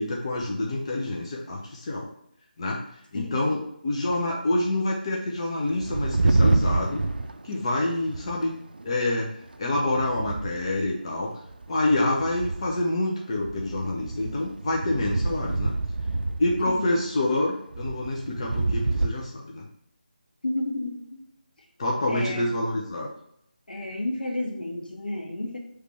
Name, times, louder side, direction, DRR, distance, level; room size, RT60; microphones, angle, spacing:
voice 1, 0.0-2.1 2.6-2.8 3.1-3.6 3.8-7.0 7.4-8.5 8.8-9.3 9.6-11.4 11.7-15.7 16.4-19.7 21.8-23.1, left 1 dB, 35° left, -2 dB, 0.7 m, -27 dB
voice 2, 3.1-3.6 16.7-17.0 20.4-21.2 22.1-22.6 23.7-25.6, left 1 dB, 65° left, 2 dB, 1.0 m, -31 dB
sound 1, 5.6-8.5 8.7-9.1 9.5-10.9 11.5-12.8 13.4-17.1 17.7-19.1, right 2 dB, 75° right, 0.4 m, -27 dB
5.0 x 3.3 x 3.2 m, 0.74 s
figure-of-eight pair, 160°, 5 cm